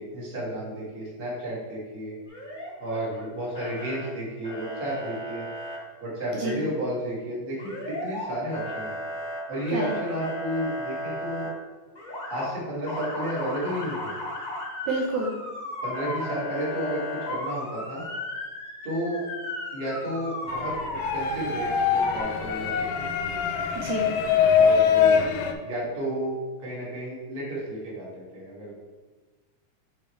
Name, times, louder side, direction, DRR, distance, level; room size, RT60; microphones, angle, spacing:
voice 1, 0.0-2.2 2.8-5.4 6.0-8.9 9.5-11.5 12.3-14.1 15.8-18.0 18.8-19.2 19.7-23.1 24.5-25.2 25.6-28.7, right 1 dB, 20° right, -6 dB, 1.6 m, -32 dB
Motor vehicle (road) / Siren, 2.3-3.2 3.5-4.1 4.4-5.8 7.6-8.3 8.5-11.5 11.9-12.5 12.9-22.2, left 1 dB, 25° left, 1.1 m, -35 dB
voice 2, 14.9-15.3 23.8-24.1, right 2 dB, 75° right, -1 dB, 2.0 m, -28 dB
sound 1, 20.5-25.5, left 7 dB, 80° left, 2.0 m, -23 dB
7.7 x 4.3 x 3.2 m, 1.3 s
omnidirectional pair, 3.7 m